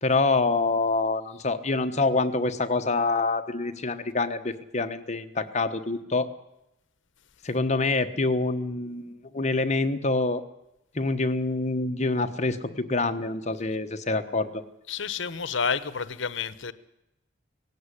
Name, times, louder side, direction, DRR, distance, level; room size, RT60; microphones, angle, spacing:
voice 1, 0.0-6.3 7.4-10.4 10.9-14.6, left 3 dB, 35° left, 1.2 m, -26 dB
voice 2, 14.9-16.7, left 6 dB, 70° left, 1.0 m, -29 dB
18.0 x 16.5 x 9.9 m
head